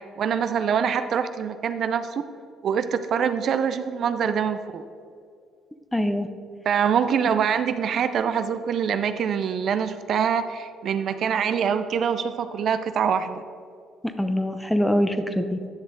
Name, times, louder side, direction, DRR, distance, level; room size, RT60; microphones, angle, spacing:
voice 1, 0.0-2.1 2.6-4.8 6.7-13.5, right 7 dB, 60° right, 10 dB, 0.4 m, -24 dB
voice 2, 5.9-6.3 14.0-15.7, equal, 5° left, 9 dB, 0.7 m, -24 dB
10.5 x 6.1 x 3.8 m, 2.3 s
supercardioid pair, 70°, 0 cm